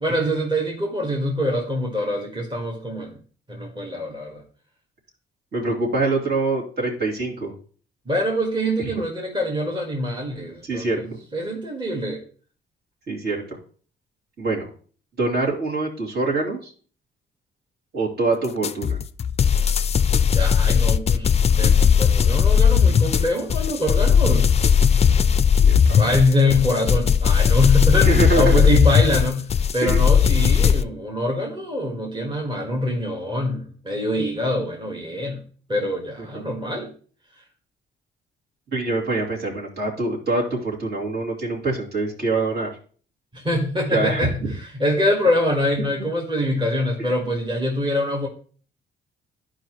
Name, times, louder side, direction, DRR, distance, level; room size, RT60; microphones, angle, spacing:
voice 1, 0.0-3.2 3.5-4.4 8.1-12.2 20.3-24.5 26.0-29.5 29.7-35.4 35.7-36.9 43.3-48.3, left 1 dB, 25° right, -1 dB, 1.5 m, -24 dB
voice 2, 5.5-7.5 8.8-9.0 10.6-11.0 13.1-13.6 14.4-14.7 15.2-16.7 17.9-19.0 25.6-26.0 28.0-28.6 29.8-30.0 36.3-36.4 38.7-42.7 43.9-44.5, right 2 dB, 55° right, -3 dB, 2.7 m, -24 dB
sound 1, 18.6-30.8, left 7 dB, 30° left, 0.4 m, -17 dB
11.5 x 4.9 x 3.1 m, 0.43 s
cardioid pair, 90°, 20 cm